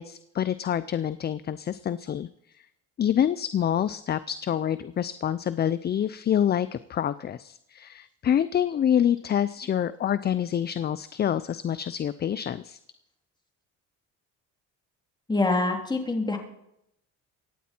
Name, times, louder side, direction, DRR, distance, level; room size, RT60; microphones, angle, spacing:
voice 1, 0.0-2.3 3.0-12.8, left 9 dB, 30° left, 15 dB, 0.5 m, -27 dB
voice 2, 15.3-16.4, left 2 dB, 15° left, 2 dB, 3.0 m, -25 dB
24.0 x 9.3 x 4.4 m, 0.79 s
cardioid pair, 100°, 34 cm